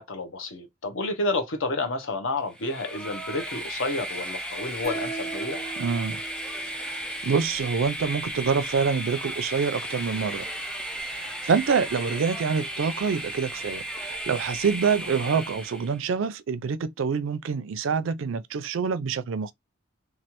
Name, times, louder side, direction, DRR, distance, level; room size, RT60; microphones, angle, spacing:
voice 1, 0.0-5.6, left 2 dB, 75° left, 0.9 m, -30 dB
Train, 2.5-16.0, right 1 dB, 5° left, 0.6 m, -35 dB
sound 1, 4.8-8.0, right 5 dB, 45° left, 1.5 m, -39 dB
voice 2, 5.8-6.2 6.7-10.5 11.0-19.5, right 5 dB, 70° right, 0.4 m, -26 dB
3.2 x 2.4 x 2.9 m
head